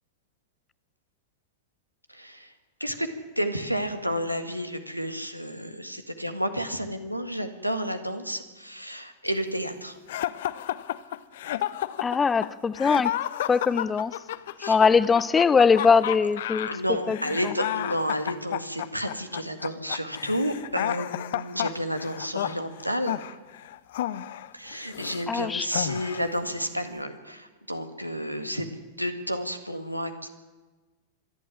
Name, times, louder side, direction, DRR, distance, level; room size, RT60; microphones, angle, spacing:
voice 1, 2.1-2.5 2.8-3.1 3.4-10.0 14.6-14.8 16.7-23.2 24.5-28.7 29.0-30.3, equal, 90° right, 8 dB, 1.8 m, -31 dB
sound 1, 10.1-25.3 25.7-26.4, left 12 dB, 55° left, 0.8 m, -32 dB
voice 2, 12.0-13.1 13.5-14.1 14.7-16.7 17.1-17.2 25.3-25.7, left 5 dB, 15° left, 18 dB, 0.6 m, -21 dB
25.5 x 11.0 x 9.9 m, 1.3 s
figure-of-eight pair, 90°, 0 cm